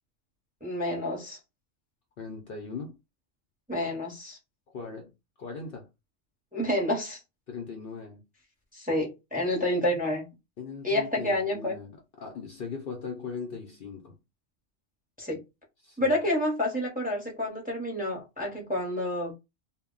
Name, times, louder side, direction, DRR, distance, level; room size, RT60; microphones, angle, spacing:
voice 1, 0.6-1.4 3.7-4.4 6.5-7.2 8.7-10.3 10.8-11.8 15.2-15.4 16.0-19.3, left 1 dB, 10° right, 0.7 m, -29 dB
voice 2, 2.2-3.0 4.7-5.1 5.4-5.9 7.5-8.2 10.6-14.2 15.8-16.2, left 5 dB, 60° left, 0.7 m, -39 dB
2.2 x 2.0 x 3.7 m
omnidirectional pair, 1.3 m